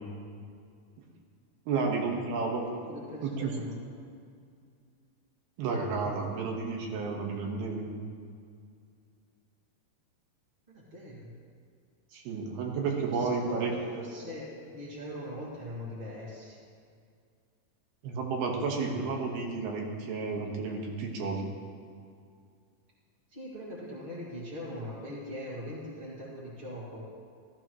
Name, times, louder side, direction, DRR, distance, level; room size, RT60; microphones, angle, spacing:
voice 1, 1.7-2.7 3.2-3.5 5.6-7.9 12.1-13.7 18.0-21.4, right 4 dB, 85° right, 1 dB, 3.3 m, -31 dB
voice 2, 2.8-3.8 10.7-11.3 12.8-16.6 18.8-19.0 23.3-27.0, left 1 dB, 25° right, -7 dB, 1.2 m, -41 dB
15.5 x 13.5 x 3.1 m, 2.2 s
omnidirectional pair, 4.3 m